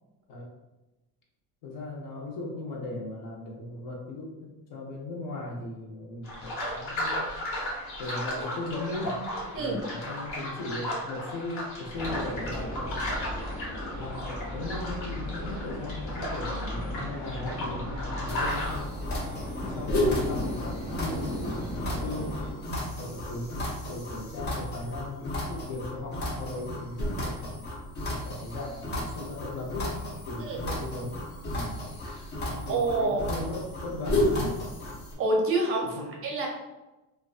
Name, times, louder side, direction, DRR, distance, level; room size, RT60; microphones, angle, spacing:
voice 1, 1.6-7.3 8.0-9.3 9.5-13.1 13.9-18.9 19.6-22.4 23.0-27.7 28.2-30.0 30.3-31.9 32.4-34.6 35.8-36.1, left 2 dB, 65° left, -1 dB, 0.7 m, -37 dB
sound 1, 6.2-18.8, left 1 dB, 85° left, 1.1 m, -35 dB
sound 2, 11.9-22.5, left 1 dB, 5° right, 0.8 m, -36 dB
sound 3, 18.3-35.1, left 1 dB, 30° left, 0.4 m, -33 dB
voice 2, 32.7-33.3 35.2-36.0 36.2-36.5, right 2 dB, 40° right, -1 dB, 0.5 m, -27 dB
2.4 x 2.2 x 2.3 m, 1.0 s
cardioid pair, 170°, 37 cm